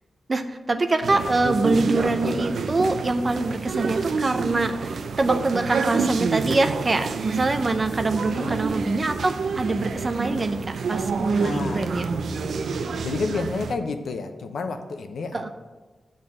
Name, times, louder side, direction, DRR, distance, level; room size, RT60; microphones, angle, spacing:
voice 1, 0.3-12.1 15.3-15.5, right 2 dB, 30° right, 7 dB, 0.7 m, -24 dB
sound 1, 1.0-13.7, right 4 dB, 85° right, 0.6 m, -28 dB
voice 2, 8.3-8.6 11.4-11.9 13.0-15.4, left 4 dB, 90° left, 7 dB, 0.8 m, -30 dB
9.8 x 4.1 x 7.4 m, 1.2 s
wide cardioid pair, 150°, 0 cm